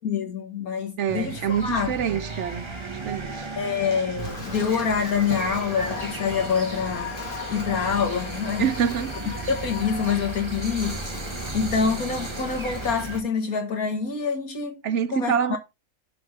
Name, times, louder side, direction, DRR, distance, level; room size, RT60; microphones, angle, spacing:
voice 1, 0.0-1.9 3.6-7.1 7.5-8.7 9.3-11.0 11.5-14.8 15.1-15.6, left 6 dB, 85° left, 2.1 m, -26 dB
voice 2, 1.0-2.6 3.0-3.4 8.6-9.3 14.8-15.6, right 8 dB, 65° right, 0.8 m, -26 dB
sound 1, 1.1-13.2, right 3 dB, 20° right, 1.2 m, -35 dB
Wind, 4.2-13.1, left 2 dB, 35° left, 2.7 m, -42 dB
sound 2, 5.8-11.8, left 6 dB, 65° left, 1.1 m, -39 dB
6.5 x 4.5 x 5.5 m
omnidirectional pair, 1.5 m